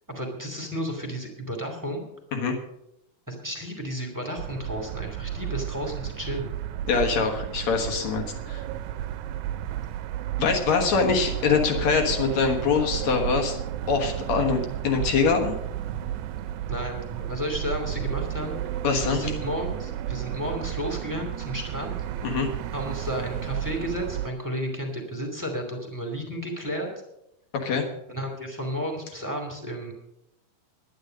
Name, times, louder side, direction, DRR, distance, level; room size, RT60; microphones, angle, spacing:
voice 1, 0.1-2.0 3.3-6.5 16.7-18.6 19.1-21.9 22.7-26.9 28.1-29.9, equal, 5° right, 2 dB, 1.7 m, -32 dB
sound 1, 4.4-24.3, right 11 dB, 75° right, 1.8 m, -32 dB
voice 2, 6.9-8.6 10.4-13.6 13.9-15.5 18.8-19.3 22.2-22.5 27.6-27.9, left 5 dB, 60° left, 3 dB, 2.5 m, -24 dB
11.0 x 10.5 x 6.4 m, 0.84 s
omnidirectional pair, 3.9 m